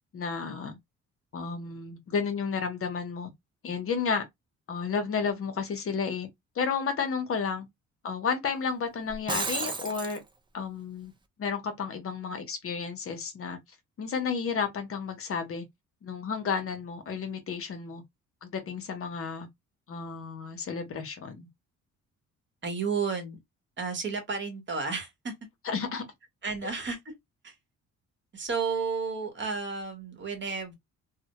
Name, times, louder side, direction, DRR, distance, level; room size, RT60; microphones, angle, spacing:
voice 1, 0.1-0.8 1.3-3.3 3.6-4.2 4.7-6.3 6.5-7.7 8.0-10.2 10.5-11.1 11.4-13.6 14.0-15.7 16.0-18.0 18.4-19.5 19.9-21.5 25.7-26.0, left 5 dB, 50° left, 0.7 m, -32 dB
Shatter, 9.1-10.2, right 4 dB, 15° right, 0.4 m, -32 dB
voice 2, 22.6-23.4 23.8-25.3 26.4-27.1 27.4-27.6 28.3-30.7, right 5 dB, 40° right, 0.9 m, -32 dB
2.1 x 2.1 x 2.8 m
cardioid pair, 90°, 30 cm